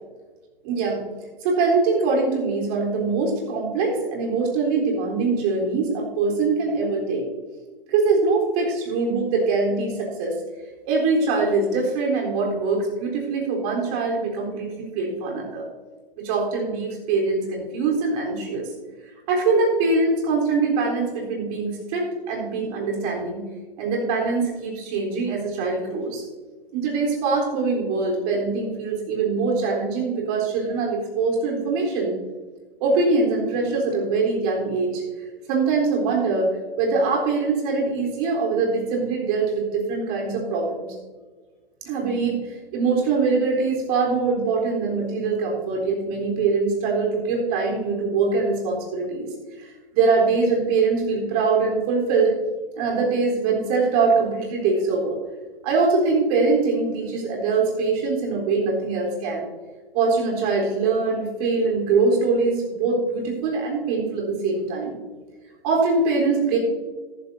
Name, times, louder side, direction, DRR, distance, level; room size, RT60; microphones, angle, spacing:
voice 1, 0.6-1.0 1.4-7.3 7.9-10.4 10.9-15.6 16.2-18.7 19.3-23.4 23.8-26.2 26.7-32.2 32.8-35.0 35.5-36.5 36.8-40.9 41.8-42.4 42.7-49.3 49.6-49.7 49.9-52.3 52.8-55.2 55.6-59.5 59.9-65.0 65.6-66.6, right 4 dB, 40° right, -1 dB, 3.8 m, -23 dB
13.5 x 12.0 x 2.7 m, 1.4 s
hypercardioid pair, 140°, 30 cm